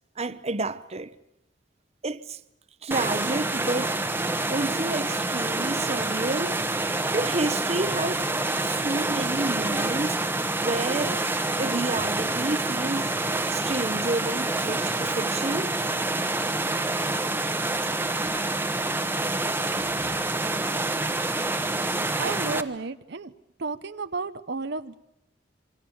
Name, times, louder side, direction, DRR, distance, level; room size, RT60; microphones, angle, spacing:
voice 1, 0.2-1.1 2.0-2.4 2.8-4.0 4.5-6.6 7.1-8.3 8.6-10.2 10.6-11.2 11.6-13.1 13.5-15.7 19.7-20.6, right 2 dB, 35° right, 0.9 m, -30 dB
sound 1, 2.9-22.6, right 2 dB, 10° right, 1.2 m, -27 dB
voice 2, 22.2-23.3 23.6-24.9, right 3 dB, 65° right, 0.9 m, -32 dB
27.5 x 23.5 x 7.2 m
head